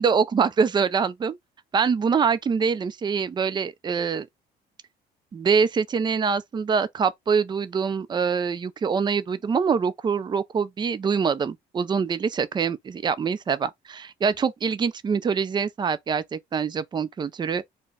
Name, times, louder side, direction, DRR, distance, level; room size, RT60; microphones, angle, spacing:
voice 1, 0.0-1.4 1.7-4.3 5.3-17.6, right 6 dB, 25° right, 0.5 m, -24 dB
4.4 x 2.2 x 4.6 m
cardioid pair, 110°, 17 cm